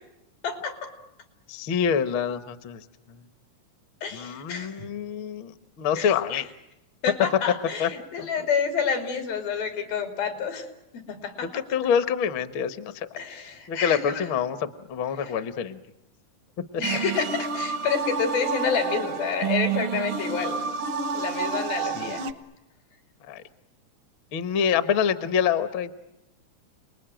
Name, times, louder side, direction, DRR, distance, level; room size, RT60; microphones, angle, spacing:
voice 1, 0.4-0.9 4.0-4.7 5.9-6.4 7.0-10.7 10.9-11.6 13.2-14.3 15.2-15.4 16.8-20.6 21.1-22.3, left 6 dB, 90° left, 6 dB, 4.7 m, -29 dB
voice 2, 1.5-2.8 4.1-6.5 7.8-7.9 8.2-8.3 11.4-13.2 13.7-15.8 21.9-22.1 23.3-23.4 24.3-25.9, left 7 dB, 65° left, 11 dB, 1.2 m, -26 dB
sound 1, 16.8-22.3, right 6 dB, 75° right, 1.2 m, -29 dB
29.5 x 20.5 x 9.0 m, 0.90 s
omnidirectional pair, 4.0 m